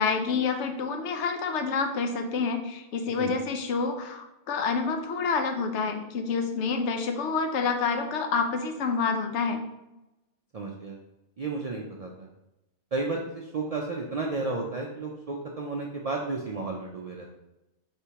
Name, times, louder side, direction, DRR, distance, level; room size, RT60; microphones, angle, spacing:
voice 1, 0.0-9.6, left 5 dB, 75° left, 5 dB, 0.9 m, -28 dB
voice 2, 10.5-11.0 11.4-12.3 12.9-17.3, right 3 dB, 60° right, -1 dB, 0.4 m, -32 dB
3.4 x 2.9 x 4.5 m, 0.94 s
omnidirectional pair, 1.2 m